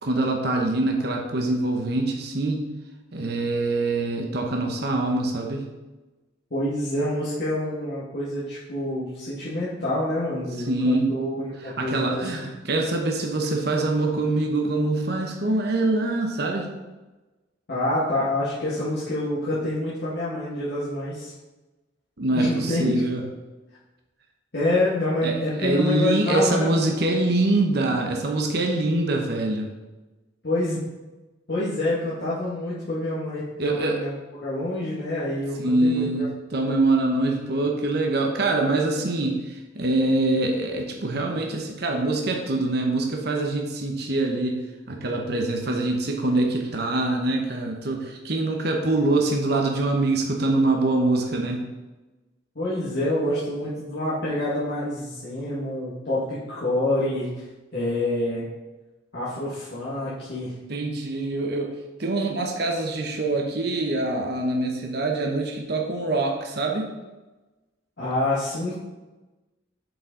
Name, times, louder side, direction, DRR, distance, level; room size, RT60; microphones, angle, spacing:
voice 1, 0.0-2.7 3.1-5.7 10.7-11.1 11.6-16.7 22.2-23.2 25.2-29.7 33.6-34.0 35.6-44.6 44.9-51.7 60.7-61.7 62.0-66.9, right 2 dB, 60° right, 1 dB, 0.9 m, -24 dB
voice 2, 6.5-12.3 17.7-21.3 22.3-22.8 24.5-26.7 30.4-30.8 31.5-36.3 52.5-57.3 57.7-58.5 59.1-60.5 68.0-68.7, left 1 dB, 60° left, -10 dB, 1.7 m, -27 dB
7.7 x 4.9 x 3.8 m, 1.1 s
head